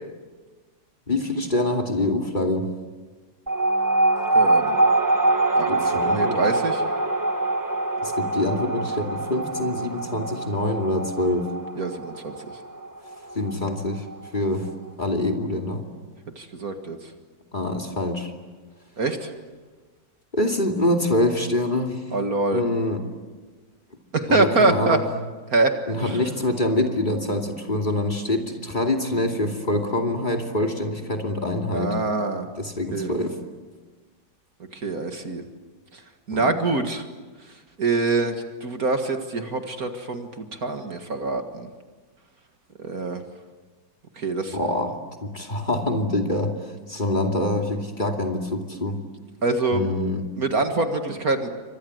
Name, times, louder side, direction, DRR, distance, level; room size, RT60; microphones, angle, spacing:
voice 1, 1.1-2.7 5.7-6.4 8.0-11.5 13.3-14.1 14.3-14.7 15.0-15.8 17.5-18.3 20.3-22.0 22.5-23.0 24.3-25.0 25.9-31.9 32.6-33.3 36.3-36.5 44.5-45.0 45.2-49.0 49.7-50.2, left 1 dB, 25° left, 4 dB, 2.6 m, -25 dB
sound 1, 3.5-14.4, right 2 dB, 15° right, 0.8 m, -24 dB
voice 2, 4.3-4.8 5.6-5.7 6.1-6.8 11.8-12.6 16.4-17.1 19.0-19.3 22.1-22.6 24.1-25.0 25.5-26.2 31.7-32.5 32.9-33.1 34.7-35.4 35.9-36.0 36.3-37.0 37.4-41.7 42.8-43.2 44.2-44.6 49.4-49.8 50.4-51.5, right 3 dB, 50° right, 6 dB, 2.2 m, -25 dB
29.5 x 25.5 x 7.9 m, 1.3 s
omnidirectional pair, 2.1 m